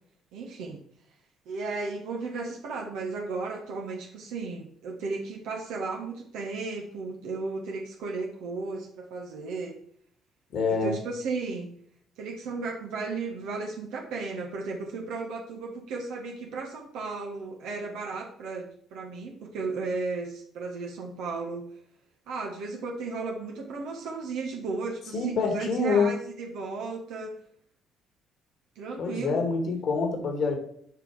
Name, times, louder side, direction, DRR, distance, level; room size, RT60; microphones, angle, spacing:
voice 1, 0.3-0.8 1.5-9.8 10.7-11.7 12.2-21.6 22.3-27.4 28.7-29.4, right 3 dB, 65° right, 0 dB, 1.4 m, -35 dB
voice 2, 10.5-11.0 25.1-26.2 29.0-30.6, left 4 dB, 55° left, 4 dB, 2.0 m, -26 dB
8.2 x 5.3 x 4.8 m, 0.64 s
figure-of-eight pair, 50°, 0 cm